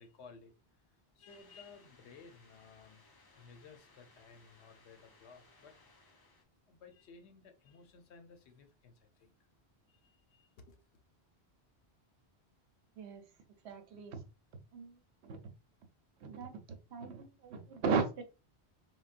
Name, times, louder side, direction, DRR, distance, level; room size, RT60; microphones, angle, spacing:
voice 1, 0.0-3.0 3.3-5.8 6.7-9.3 9.9-11.0, left 5 dB, 80° left, 0.9 m, -57 dB
sound 1, 1.3-6.4, left 3 dB, 30° left, 0.5 m, -64 dB
voice 2, 13.0-13.3 13.6-14.2 14.7-15.4 16.2-18.3, right 5 dB, 80° right, 0.9 m, -37 dB
3.9 x 2.1 x 2.4 m
omnidirectional pair, 1.1 m